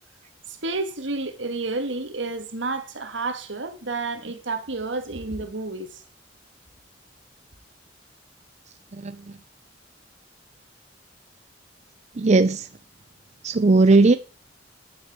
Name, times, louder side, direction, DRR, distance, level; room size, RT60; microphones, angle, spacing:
voice 1, 0.5-6.0, right 3 dB, 80° right, 1.9 m, -30 dB
voice 2, 8.9-9.4 12.1-12.7 13.4-14.2, right 3 dB, 35° right, 0.5 m, -18 dB
9.6 x 7.6 x 7.5 m
head